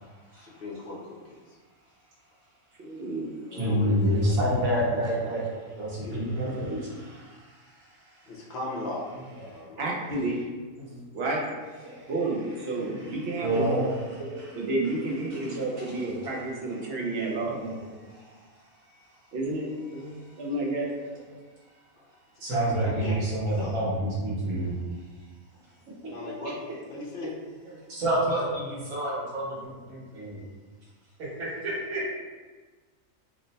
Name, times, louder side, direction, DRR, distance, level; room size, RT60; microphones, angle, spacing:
voice 1, 0.3-1.6 3.5-4.4 4.9-5.3 6.0-6.3 8.3-9.0 9.5-9.9 22.0-22.1 22.5-23.2 23.5-23.8 26.1-26.5 26.8-27.3, left 1 dB, 55° left, -3 dB, 0.6 m, -37 dB
voice 2, 2.8-3.3 9.8-10.4 11.1-11.5 12.1-13.7 14.5-17.6 19.3-19.7 20.4-20.9, right 2 dB, 55° right, -2 dB, 0.8 m, -30 dB
voice 3, 3.5-8.3 9.4-9.6 10.8-11.0 11.8-12.1 12.7-14.6 15.2-18.4 19.9-20.2 21.3-21.4 22.4-24.7 26.4-26.5 27.9-30.4 31.6-32.0, right 1 dB, 90° right, -7 dB, 1.4 m, -30 dB
3.2 x 2.1 x 3.9 m, 1.3 s
omnidirectional pair, 1.4 m